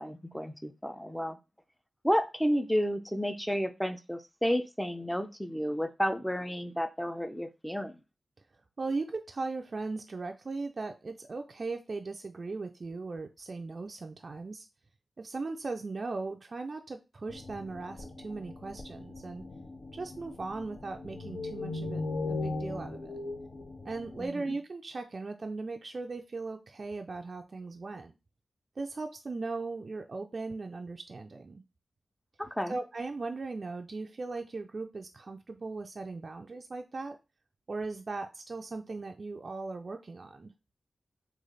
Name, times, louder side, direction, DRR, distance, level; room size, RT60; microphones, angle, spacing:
voice 1, 0.0-1.4 2.0-8.0 24.2-24.6 32.4-32.8, equal, 5° left, 8 dB, 0.5 m, -31 dB
voice 2, 8.8-14.7 15.2-19.4 19.9-23.1 23.9-28.1 28.8-31.6 32.7-37.2 37.7-40.5, right 3 dB, 55° right, 4 dB, 0.3 m, -38 dB
sound 1, 17.3-24.3, left 3 dB, 70° left, 0.9 m, -39 dB
3.1 x 2.4 x 3.8 m, 0.27 s
cardioid pair, 45°, 0 cm